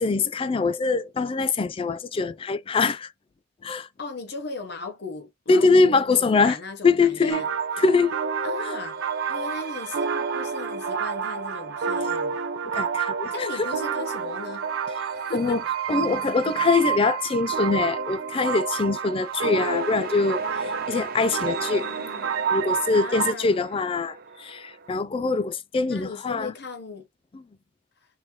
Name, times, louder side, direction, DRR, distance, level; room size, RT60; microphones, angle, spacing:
voice 1, 0.0-3.1 3.6-3.9 5.5-6.6 6.8-7.4 7.8-8.2 12.7-13.7 15.3-15.6 15.9-21.9 22.5-26.5, left 4 dB, 25° left, 0.3 m, -23 dB
voice 2, 4.0-7.5 8.4-9.0 9.3-12.4 13.3-14.7 15.1-15.6 21.7-22.3 22.9-23.5 25.9-27.1, left 3 dB, 55° left, 0.8 m, -37 dB
sound 1, 7.1-7.4 8.9-13.7 14.5-24.9, right 5 dB, 50° right, 0.5 m, -43 dB
sound 2, 7.3-23.3, right 6 dB, 85° right, 0.7 m, -29 dB
3.8 x 3.1 x 2.8 m
head